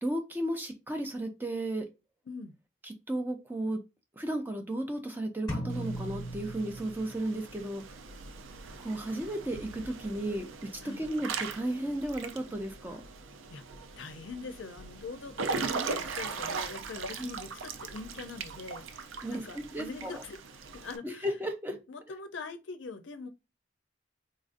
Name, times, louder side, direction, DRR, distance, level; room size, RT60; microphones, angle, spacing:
voice 1, 0.0-1.9 2.8-3.8 4.2-7.8 8.8-10.5 11.0-13.0 17.2-17.3 19.2-20.2 21.0-21.8, right 1 dB, 10° right, 0.4 m, -34 dB
sound 1, 5.5-7.4, equal, 20° left, 1.1 m, -37 dB
Water / Splash splatter / Drip, 5.7-21.0, right 4 dB, 80° right, 0.4 m, -40 dB
voice 2, 14.0-20.4 20.7-21.3 21.9-23.3, left 4 dB, 70° left, 0.5 m, -43 dB
4.0 x 2.5 x 2.4 m
head